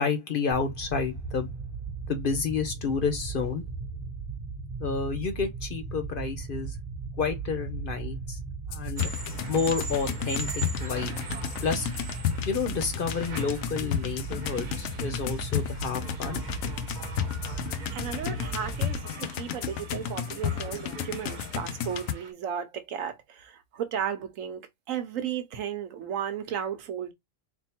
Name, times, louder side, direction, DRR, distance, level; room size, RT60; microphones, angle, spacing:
voice 1, 0.0-1.5 2.1-3.6 4.8-6.8 7.2-8.4 8.7-9.1 9.5-11.1 11.6-11.9 12.4-16.4, left 5 dB, 50° left, 0.8 m, -30 dB
sound 1, 0.5-19.0, right 4 dB, 10° right, 1.1 m, -37 dB
sound 2, 8.7-22.1, left 9 dB, 90° left, 1.0 m, -33 dB
sound 3, 9.0-22.3, right 5 dB, 45° right, 0.8 m, -43 dB
voice 2, 17.9-27.1, right 8 dB, 85° right, 1.2 m, -34 dB
3.5 x 2.3 x 4.3 m
omnidirectional pair, 1.3 m